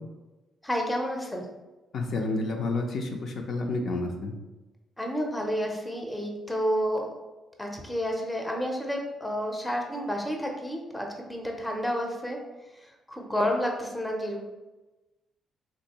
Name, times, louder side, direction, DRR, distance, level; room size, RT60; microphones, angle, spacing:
voice 1, 0.6-1.5 5.0-7.1 7.6-12.4 13.1-14.4, equal, 10° left, 1 dB, 0.6 m, -30 dB
voice 2, 1.9-4.3, left 2 dB, 65° left, 2 dB, 0.4 m, -30 dB
3.5 x 2.6 x 2.9 m, 1.1 s
cardioid pair, 90°, 0 cm